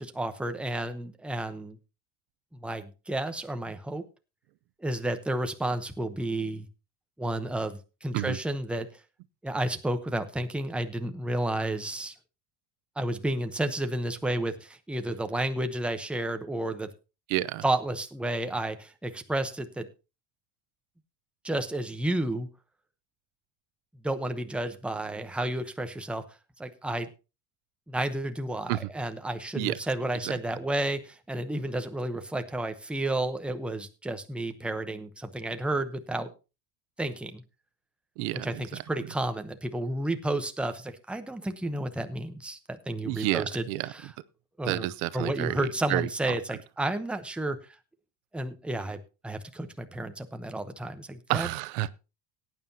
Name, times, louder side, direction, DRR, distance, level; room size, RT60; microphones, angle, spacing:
voice 1, 0.0-1.8 2.5-4.0 4.8-6.7 7.2-8.9 9.4-12.1 13.0-16.9 17.6-19.9 21.4-22.5 24.0-26.3 26.6-27.1 27.9-36.3 37.0-37.4 38.4-43.6 43.9-44.1 44.6-44.9 45.1-47.6 48.3-51.5, right 1 dB, ahead, 0.9 m, -31 dB
voice 2, 17.3-17.7 28.7-28.9 29.5-29.8 30.2-30.4 38.2-38.8 43.0-44.1 44.6-46.4 51.3-51.9, right 17 dB, 85° right, 0.8 m, -30 dB
18.0 x 9.5 x 2.8 m
cardioid pair, 130°, 49 cm